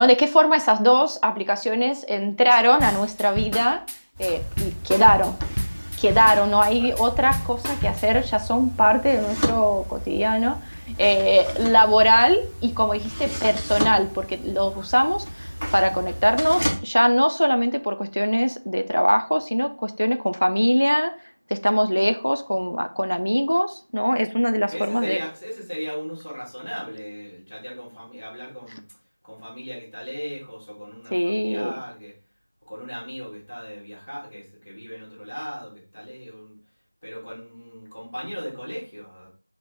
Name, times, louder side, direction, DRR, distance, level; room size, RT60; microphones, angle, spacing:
voice 1, 0.0-3.8 4.2-5.4 6.0-21.1 21.5-25.2 31.1-31.8, equal, 85° left, 8 dB, 0.3 m, -20 dB
sound 1, 2.8-8.3, equal, 85° right, 0.4 m, -29 dB
sound 2, 4.1-16.8, equal, 50° right, 0.7 m, -32 dB
voice 2, 6.5-6.9 13.3-13.6 24.7-28.8 29.2-32.1 32.7-36.6 37.0-39.3, equal, 5° left, -17 dB, 0.7 m, -37 dB
3.3 x 2.1 x 3.0 m, 0.38 s
figure-of-eight pair, 180°, 0 cm